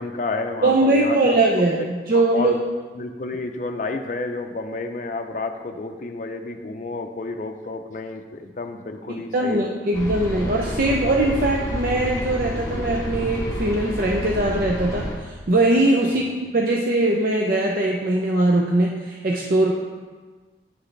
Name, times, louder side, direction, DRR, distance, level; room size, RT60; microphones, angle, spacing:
voice 1, 0.0-1.4 1.8-1.9 2.1-2.6 2.9-9.6 16.1-16.3, left 3 dB, 45° left, 5 dB, 0.5 m, -30 dB
voice 2, 0.6-1.8 2.1-2.5 9.3-19.7, right 2 dB, 50° right, -1 dB, 0.5 m, -21 dB
sound 1, 9.9-15.2, left 1 dB, 20° left, 1.0 m, -29 dB
8.8 x 6.1 x 3.3 m, 1.4 s
head